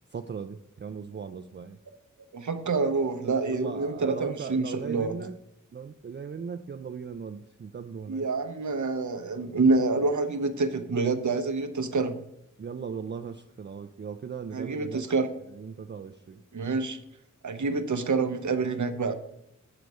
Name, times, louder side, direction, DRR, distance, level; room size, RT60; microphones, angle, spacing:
voice 1, 0.1-1.8 3.5-5.4 5.7-8.3 12.6-15.0 15.5-16.4, right 6 dB, 35° right, 6 dB, 0.4 m, -38 dB
voice 2, 2.3-5.2 8.1-12.2 14.5-15.3 16.5-17.0 17.4-19.1, right 3 dB, 65° right, 8 dB, 0.7 m, -27 dB
7.8 x 4.0 x 4.7 m, 0.79 s
wide cardioid pair, 55°, 32 cm